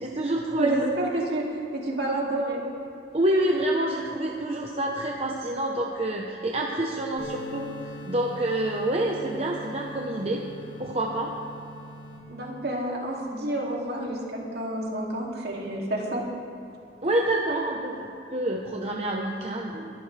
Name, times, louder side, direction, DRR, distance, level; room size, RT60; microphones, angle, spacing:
voice 1, 0.0-0.7 3.1-10.4 10.8-11.3 17.0-19.9, right 1 dB, 35° right, -1 dB, 1.0 m, -27 dB
voice 2, 0.6-1.5 1.7-2.6 12.3-16.2, right 1 dB, 65° right, -2 dB, 2.7 m, -29 dB
sound 1, 7.2-12.2, left 1 dB, 70° left, 3.2 m, -41 dB
22.5 x 12.0 x 3.4 m, 2.8 s
head